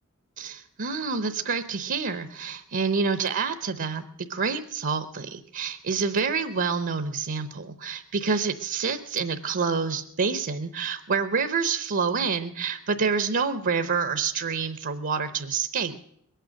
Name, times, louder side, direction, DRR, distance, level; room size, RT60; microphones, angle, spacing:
voice 1, 0.4-15.9, right 5 dB, 60° right, 10 dB, 0.8 m, -27 dB
21.5 x 9.2 x 6.3 m, 0.74 s
head